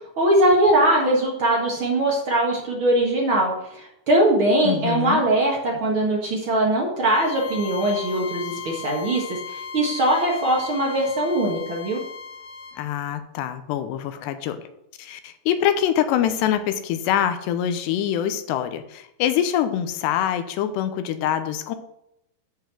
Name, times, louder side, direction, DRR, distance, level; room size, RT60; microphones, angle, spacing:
voice 1, 0.2-12.0, right 1 dB, 65° right, -1 dB, 1.3 m, -21 dB
voice 2, 4.6-5.2 12.8-14.6 15.0-21.8, left 10 dB, 80° left, 10 dB, 2.9 m, -24 dB
Bowed string instrument, 7.0-12.8, left 5 dB, 55° left, 3.4 m, -36 dB
8.8 x 5.8 x 7.5 m, 0.81 s
omnidirectional pair, 5.0 m